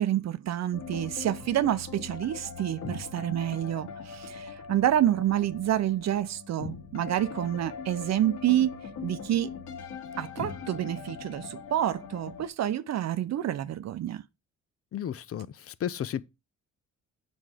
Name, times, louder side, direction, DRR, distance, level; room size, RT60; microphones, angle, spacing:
voice 1, 0.0-9.5 10.2-14.2, right 12 dB, 60° right, 0.7 m, -28 dB
sound 1, 0.7-12.5, left 5 dB, 75° left, 2.5 m, -41 dB
voice 2, 14.9-16.2, left 9 dB, 50° left, 0.7 m, -33 dB
7.6 x 6.2 x 5.0 m
cardioid pair, 90°, 30 cm